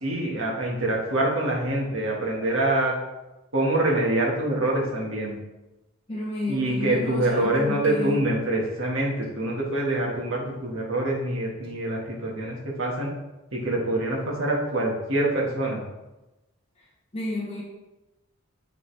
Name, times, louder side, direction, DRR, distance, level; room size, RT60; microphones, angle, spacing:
voice 1, 0.0-2.9 3.5-5.4 6.5-13.1 13.5-15.8, right 1 dB, 65° right, -3 dB, 1.8 m, -25 dB
voice 2, 6.1-8.3 16.8-16.9 17.1-17.6, left 2 dB, 25° left, -5 dB, 0.9 m, -31 dB
9.4 x 4.1 x 3.4 m, 1.0 s
head